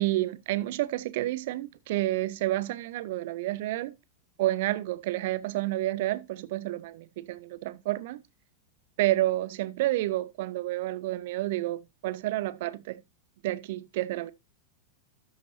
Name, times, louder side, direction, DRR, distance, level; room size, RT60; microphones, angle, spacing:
voice 1, 0.0-3.9 4.4-8.2 9.0-13.0 13.4-14.3, right 16 dB, 50° right, 0.6 m, -30 dB
13.0 x 6.1 x 2.7 m
figure-of-eight pair, 90°, 0 cm